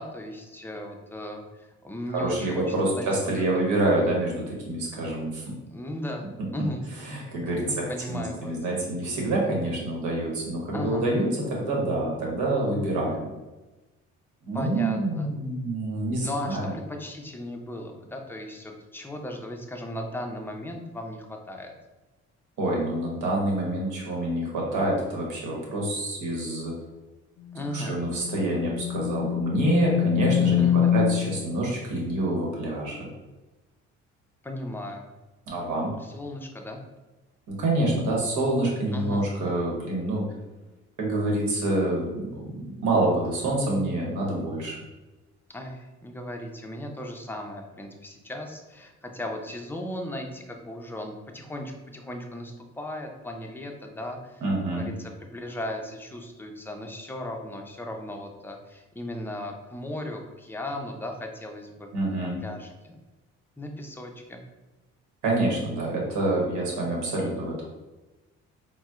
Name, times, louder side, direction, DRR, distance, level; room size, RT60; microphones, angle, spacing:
voice 1, 0.0-3.1 3.4-3.7 5.7-6.3 6.5-6.9 7.5-8.5 10.7-11.1 14.5-15.3 16.2-21.7 27.5-28.0 30.6-30.9 34.4-35.1 36.0-36.8 38.9-39.3 45.5-54.4 54.7-61.9 62.2-63.0 63.6-64.4, left 1 dB, 5° left, 2 dB, 0.4 m, -36 dB
voice 2, 2.1-5.5 7.0-13.3 14.4-16.7 22.6-26.7 27.7-33.1 35.5-35.9 37.5-40.2 41.0-44.8 54.4-54.9 61.9-62.4 65.2-67.6, right 2 dB, 75° right, -2 dB, 1.1 m, -27 dB
sound 1, 27.4-31.3, left 10 dB, 75° left, 0.4 m, -25 dB
4.1 x 2.1 x 2.4 m, 1.1 s
supercardioid pair, 80°, 30 cm